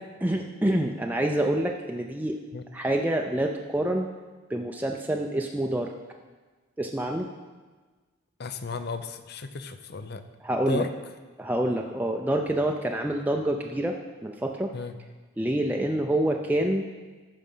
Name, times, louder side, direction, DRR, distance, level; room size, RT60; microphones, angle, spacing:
voice 1, 0.2-2.4 2.7-4.1 4.5-5.9 6.8-7.3 10.4-10.8 11.4-14.7 15.4-16.8, right 1 dB, 10° right, 1 dB, 0.4 m, -27 dB
voice 2, 8.4-10.2 10.7-10.9 14.7-14.9, left 3 dB, 55° left, 10 dB, 0.6 m, -34 dB
14.0 x 5.0 x 5.5 m, 1.3 s
head